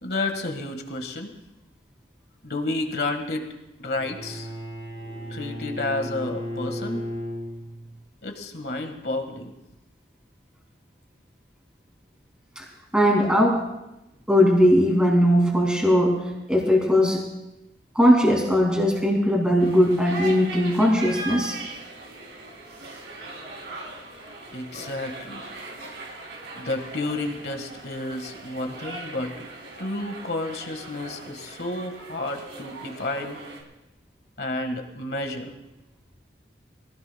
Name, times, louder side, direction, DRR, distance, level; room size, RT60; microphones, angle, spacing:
voice 1, 0.0-1.3 2.4-3.5 3.8-4.5 5.3-7.0 8.2-9.5 24.5-25.5 26.5-29.5 29.8-33.4 34.4-35.5, left 2 dB, 60° left, 5 dB, 1.5 m, -31 dB
Bowed string instrument, 3.9-8.0, equal, 30° right, 3.1 m, -35 dB
voice 2, 12.9-13.7 14.3-16.2 16.5-17.2 17.9-21.6, equal, 5° right, -2 dB, 2.5 m, -19 dB
sound 1, 19.6-33.6, right 2 dB, 85° right, 3.1 m, -39 dB
23.5 x 16.5 x 2.2 m, 0.95 s
head